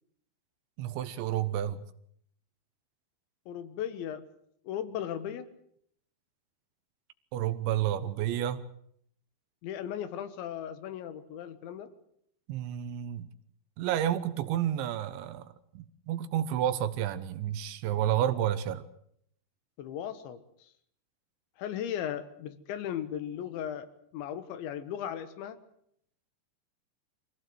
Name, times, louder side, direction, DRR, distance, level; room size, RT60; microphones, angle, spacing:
voice 1, 0.8-1.9 7.3-8.7 12.5-13.3 13.8-18.8, right 11 dB, 85° right, 3.5 m, -30 dB
voice 2, 3.5-4.2 4.7-5.5 9.6-11.9 19.8-20.7 21.6-25.6, left 9 dB, 85° left, 3.8 m, -37 dB
25.0 x 17.0 x 7.9 m
omnidirectional pair, 5.1 m